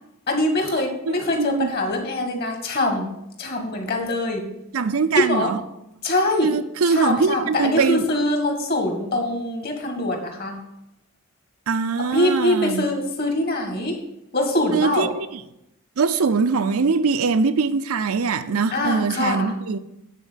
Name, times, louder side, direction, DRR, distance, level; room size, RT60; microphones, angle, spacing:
voice 1, 0.3-3.1 3.4-4.5 5.2-5.6 6.0-6.6 6.9-10.6 12.1-14.0 14.3-15.1 18.7-19.5, left 1 dB, 45° left, 1.7 m, -23 dB
voice 2, 1.1-1.7 4.7-5.6 6.4-8.0 11.7-12.8 14.7-15.4 16.0-19.8, right 4 dB, 75° right, 0.5 m, -22 dB
9.3 x 4.4 x 7.3 m
head